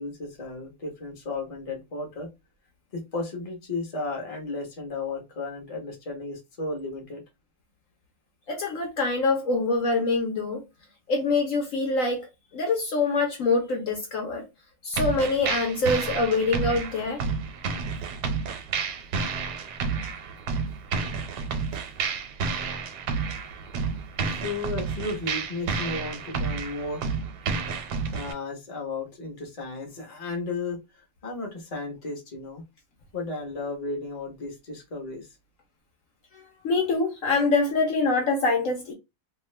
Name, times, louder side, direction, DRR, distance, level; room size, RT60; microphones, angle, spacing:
voice 1, 0.0-2.3 2.9-7.2 21.7-21.9 22.5-22.7 24.3-27.1 28.1-30.8 31.2-32.6 33.1-35.3, left 3 dB, 30° left, 0.8 m, -34 dB
voice 2, 8.5-10.6 11.1-12.3 12.5-14.4 14.8-17.2 36.6-38.9, left 3 dB, 60° left, 1.0 m, -25 dB
sound 1, 14.9-28.3, right 5 dB, 90° right, 1.2 m, -30 dB
2.7 x 2.2 x 3.1 m
omnidirectional pair, 1.7 m